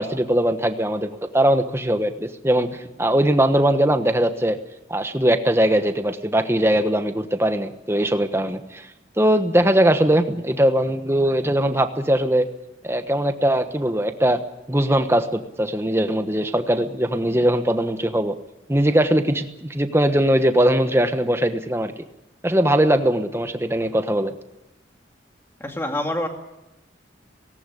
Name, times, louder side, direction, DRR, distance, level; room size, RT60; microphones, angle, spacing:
voice 1, 0.0-4.6 4.9-8.9 9.2-12.5 12.8-18.4 18.7-21.9 22.4-24.3, right 1 dB, 15° right, 8 dB, 1.2 m, -20 dB
voice 2, 25.6-26.3, left 1 dB, 10° left, 4 dB, 2.2 m, -26 dB
18.5 x 17.5 x 10.0 m, 0.95 s
head